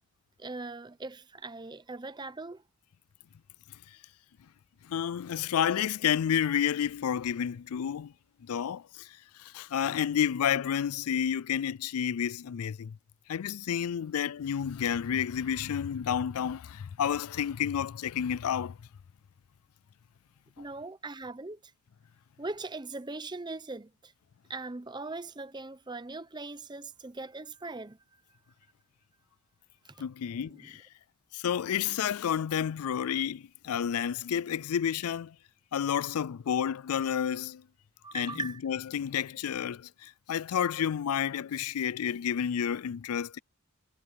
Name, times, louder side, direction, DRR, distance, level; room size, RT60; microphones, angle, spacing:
voice 1, 0.4-2.6 20.6-21.6 22.4-24.1 24.5-28.0 29.8-29.9 30.5-30.7 38.0-38.6, right 3 dB, 20° right, 0.7 m, -40 dB
voice 2, 4.9-8.1 8.4-9.1 9.4-13.0 13.3-18.8 30.0-30.8 31.3-35.3 35.7-37.6 38.1-43.4, left 8 dB, 80° left, 0.4 m, -30 dB
head